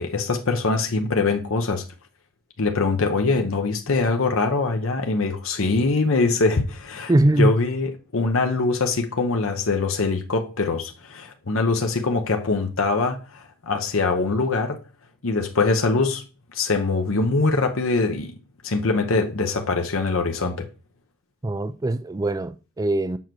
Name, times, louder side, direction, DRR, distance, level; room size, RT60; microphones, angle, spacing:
voice 1, 0.0-1.8 2.6-14.8 15.2-16.2 16.5-18.4 18.6-20.7, left 3 dB, 70° left, 0.9 m, -23 dB
voice 2, 7.1-7.5 21.4-23.2, right 1 dB, 15° right, 0.3 m, -21 dB
7.2 x 3.0 x 6.1 m
head